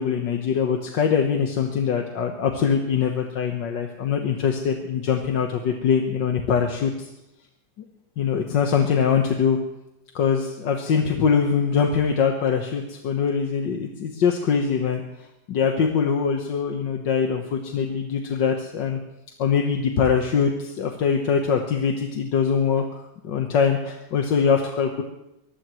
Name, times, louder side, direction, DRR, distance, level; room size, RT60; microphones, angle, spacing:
voice 1, 0.0-7.1 8.2-9.6 10.2-15.0 15.5-19.0 19.4-22.8 23.2-25.0, left 6 dB, 80° left, 3 dB, 1.9 m, -23 dB
23.5 x 19.5 x 3.2 m, 0.88 s
omnidirectional pair, 1.9 m